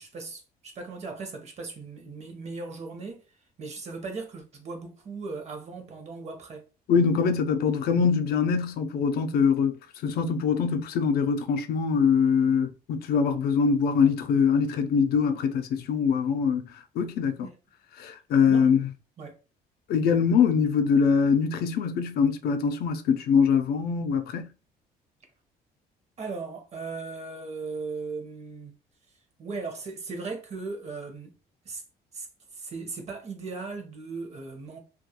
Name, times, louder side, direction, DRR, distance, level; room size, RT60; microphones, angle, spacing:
voice 1, 0.0-3.2 3.6-6.6 17.4-17.5 18.5-18.7 19.2-19.4 26.2-28.7 29.4-31.3 31.6-31.8 32.1-32.3 32.5-34.8, right 4 dB, 40° right, 0.7 m, -37 dB
voice 2, 6.9-9.8 10.0-16.7 17.0-17.4 18.0-18.9 19.9-24.5, left 6 dB, 65° left, 0.4 m, -23 dB
2.3 x 2.2 x 2.7 m
cardioid pair, 110°, 17 cm